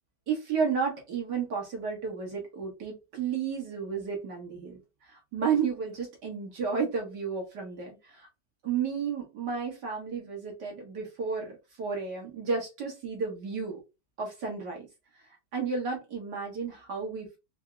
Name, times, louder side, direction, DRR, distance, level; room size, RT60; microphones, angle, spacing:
voice 1, 0.3-4.8 5.1-8.3 8.6-13.8 14.2-14.9 15.5-17.4, right 5 dB, 70° right, 0 dB, 2.2 m, -32 dB
4.5 x 2.8 x 2.3 m, 0.25 s
omnidirectional pair, 1.9 m